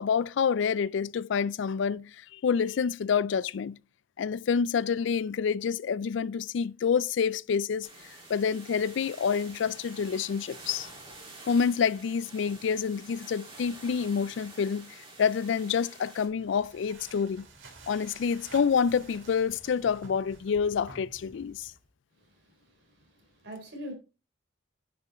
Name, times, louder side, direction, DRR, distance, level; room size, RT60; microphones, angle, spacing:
voice 1, 0.0-3.8 4.2-7.9 8.3-10.9 11.5-14.8 15.2-17.5 17.9-21.7, left 6 dB, 65° left, 0.3 m, -28 dB
sound 1, 7.8-16.3, right 2 dB, 30° right, 3.5 m, -48 dB
sound 2, 16.3-21.9, right 3 dB, 75° right, 2.5 m, -51 dB
voice 2, 22.2-23.9, equal, 60° right, 4.3 m, -44 dB
10.5 x 6.1 x 4.3 m
head